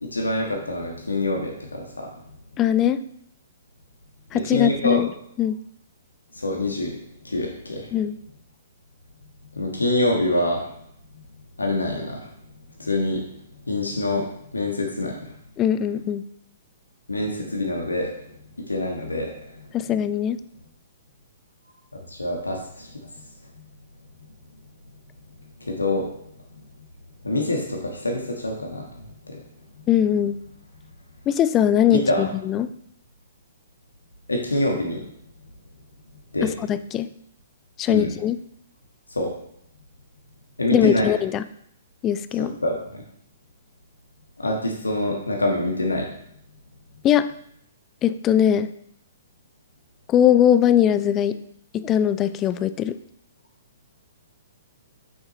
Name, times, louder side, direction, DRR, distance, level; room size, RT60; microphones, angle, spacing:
voice 1, 0.0-2.1 4.3-5.0 6.3-7.0 7.2-7.9 9.5-10.6 11.6-12.3 12.8-13.2 13.7-14.3 14.5-15.2 17.1-18.1 18.7-19.3 22.2-22.9 25.7-26.1 27.2-28.9 29.3-29.4 31.9-32.3 34.3-35.0 36.3-36.5 37.9-38.1 39.1-39.3 40.6-41.1 42.4-43.0 44.4-46.1, left 1 dB, 80° left, 1 dB, 1.4 m, -25 dB
voice 2, 2.6-3.0 4.3-5.1 5.4-5.6 7.9-8.2 15.6-16.2 19.7-20.4 29.9-30.4 31.3-32.7 36.4-37.1 37.8-38.4 40.7-41.4 42.0-42.5 47.0-47.3 48.0-48.7 50.1-51.4 51.7-53.0, left 10 dB, 25° left, 13 dB, 0.4 m, -20 dB
8.7 x 6.2 x 3.1 m, 0.70 s
figure-of-eight pair, 120°, 0 cm